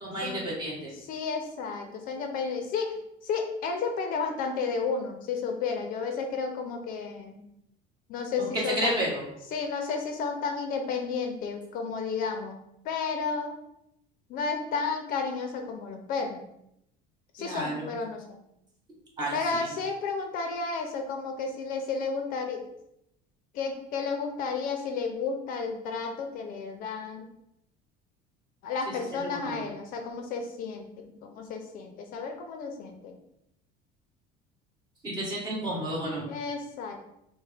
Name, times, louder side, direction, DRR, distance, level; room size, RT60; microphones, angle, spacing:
voice 1, 0.0-0.9 8.4-8.5 8.8-9.2 17.4-17.9 19.2-19.7 29.1-29.6 35.0-36.3, right 1 dB, 20° right, -5 dB, 1.4 m, -32 dB
voice 2, 1.0-3.0 3.2-7.4 8.1-9.0 9.5-12.6 12.8-13.5 14.3-16.4 17.3-18.4 19.3-22.6 23.5-27.3 28.6-33.2 36.3-37.0, left 5 dB, 50° left, 4 dB, 0.5 m, -32 dB
6.0 x 2.1 x 3.3 m, 0.81 s
cardioid pair, 160°, 18 cm